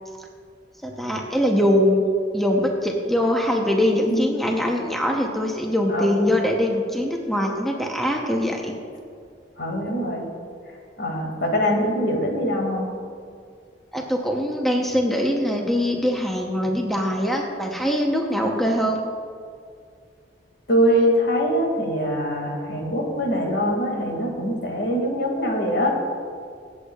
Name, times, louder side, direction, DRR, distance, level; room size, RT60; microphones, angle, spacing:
voice 1, 0.8-2.0 2.3-8.7 13.9-19.0, left 1 dB, ahead, 0 dB, 0.8 m, -22 dB
voice 2, 5.9-6.3 9.6-10.3 11.0-12.9 20.7-26.0, equal, 65° left, 0 dB, 2.3 m, -23 dB
24.5 x 8.2 x 2.4 m, 2.2 s
head